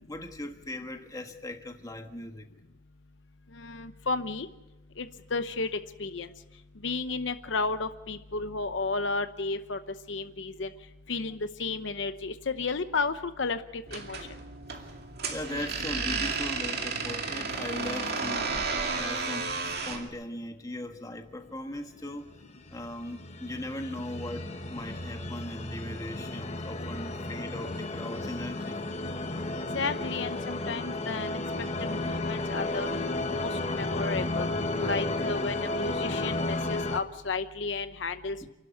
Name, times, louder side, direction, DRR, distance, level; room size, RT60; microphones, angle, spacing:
voice 1, 0.1-2.5 14.8-14.9 15.2-18.6 18.9-22.4 22.7-28.8 38.4-38.5, left 1 dB, 20° left, 1.4 m, -39 dB
voice 2, 3.6-4.5 5.0-5.7 6.0-6.3 6.8-9.8 10.1-10.7 11.1-14.2 29.7-31.4 31.8-32.9 33.3-34.5 34.8-38.4, left 3 dB, 65° left, 0.8 m, -32 dB
sound 1, 13.9-20.1, right 4 dB, 50° right, 2.3 m, -32 dB
sound 2, 22.6-37.0, left 2 dB, 35° left, 1.2 m, -33 dB
28.5 x 12.0 x 8.3 m
head